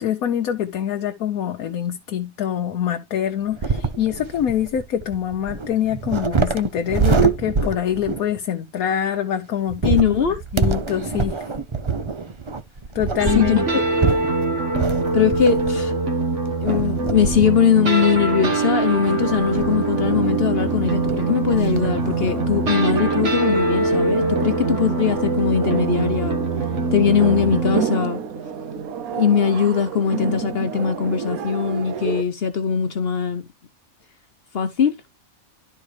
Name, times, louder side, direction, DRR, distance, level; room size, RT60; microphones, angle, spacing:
voice 1, 0.0-10.1 10.5-11.4 12.9-13.6, left 10 dB, 85° left, 1.3 m, -25 dB
sound 1, 3.5-8.4 9.7-15.9 16.7-17.6 18.0-18.1 19.2-19.9 20.8-20.9 21.1-21.2 21.5-21.9, right 5 dB, 40° right, 0.4 m, -25 dB
voice 2, 9.8-10.4 13.3-13.8 15.1-15.9 16.6-26.4 26.9-28.2 29.1-33.4 34.5-34.9, left 7 dB, 50° left, 1.0 m, -20 dB
sound 2, 13.2-27.8, right 3 dB, 55° right, 1.8 m, -23 dB
sound 3, 19.9-32.2, right 7 dB, 85° right, 1.2 m, -30 dB
12.0 x 4.5 x 3.2 m
omnidirectional pair, 1.5 m